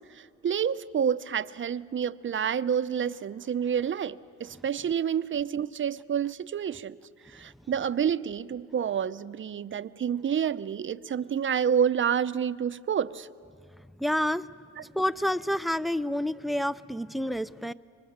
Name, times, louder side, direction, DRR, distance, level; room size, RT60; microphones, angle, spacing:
voice 1, 0.1-7.0 7.3-13.3 14.8-14.9, right 8 dB, 40° right, 13 dB, 0.7 m, -29 dB
voice 2, 14.0-14.5 14.8-17.7, left 1 dB, ahead, 16 dB, 0.6 m, -28 dB
29.5 x 24.0 x 7.4 m, 2.3 s
cardioid pair, 90°, 30 cm